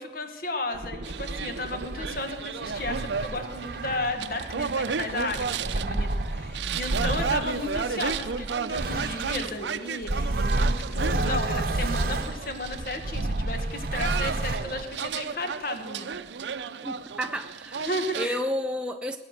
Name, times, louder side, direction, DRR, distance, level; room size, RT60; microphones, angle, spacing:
voice 1, 0.0-16.2 17.8-18.4, left 2 dB, 55° left, 6 dB, 1.5 m, -34 dB
sound 1, 0.7-9.6 10.0-14.8, right 2 dB, 55° right, 0.9 m, -31 dB
sound 2, 1.0-18.3, right 6 dB, 75° right, 0.5 m, -34 dB
voice 2, 16.8-17.9 18.2-19.2, equal, 5° right, 4 dB, 0.4 m, -31 dB
20.0 x 8.2 x 6.5 m, 1.4 s
head